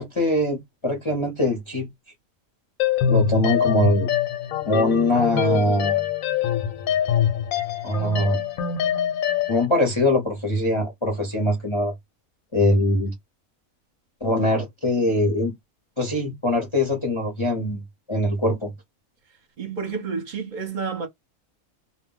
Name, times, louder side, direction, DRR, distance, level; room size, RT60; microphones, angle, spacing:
voice 1, 0.0-1.9 3.1-4.1 4.7-6.0 7.8-8.4 9.5-11.9 12.5-13.1 14.2-15.5 16.0-17.8 18.1-18.7, left 1 dB, 30° left, 0.6 m, -22 dB
sound 1, 2.8-9.7, left 9 dB, 90° left, 1.0 m, -24 dB
voice 2, 19.6-21.1, right 5 dB, 45° right, 0.7 m, -30 dB
2.2 x 2.1 x 3.7 m
omnidirectional pair, 1.4 m